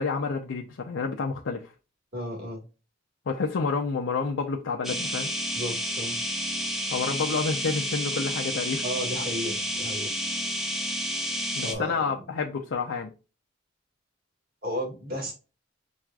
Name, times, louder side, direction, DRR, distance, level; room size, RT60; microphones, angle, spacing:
voice 1, 0.0-1.7 3.3-5.3 6.9-8.8 11.6-13.1, left 4 dB, 80° left, 0.5 m, -29 dB
voice 2, 2.1-2.6 5.5-6.2 8.8-10.1 11.6-12.0 14.6-15.3, equal, 50° right, 1.7 m, -33 dB
sound 1, 4.8-11.7, equal, ahead, 0.5 m, -30 dB
6.0 x 2.4 x 2.3 m
head